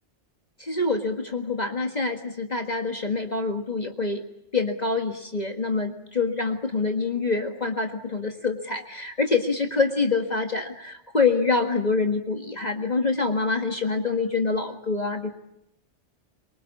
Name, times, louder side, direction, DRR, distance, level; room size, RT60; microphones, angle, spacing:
voice 1, 0.6-4.2 4.5-15.3, left 3 dB, 35° left, 4 dB, 1.8 m, -26 dB
24.5 x 24.0 x 8.4 m, 0.82 s
omnidirectional pair, 1.2 m